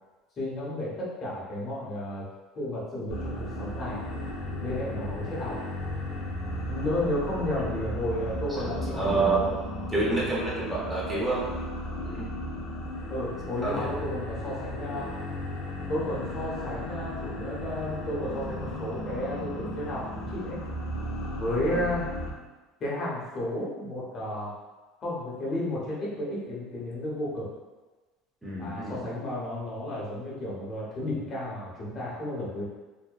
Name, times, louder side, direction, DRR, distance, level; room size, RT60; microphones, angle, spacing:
voice 1, 0.4-2.3 2.5-4.0 4.6-5.6 6.7-9.3 10.0-10.1 13.1-15.1 15.9-20.6 21.3-22.0 22.8-24.5 25.0-27.5 28.6-32.7, left 1 dB, 40° left, -6 dB, 0.8 m, -32 dB
sound 1, 3.1-22.3, left 1 dB, 60° left, 0.4 m, -35 dB
voice 2, 8.6-9.6 9.9-11.5 12.0-12.3 13.6-13.9 21.5-21.8 28.4-29.0, right 3 dB, 15° right, -7 dB, 0.7 m, -28 dB
2.7 x 2.1 x 2.2 m, 1.2 s
supercardioid pair, 95°, 0 cm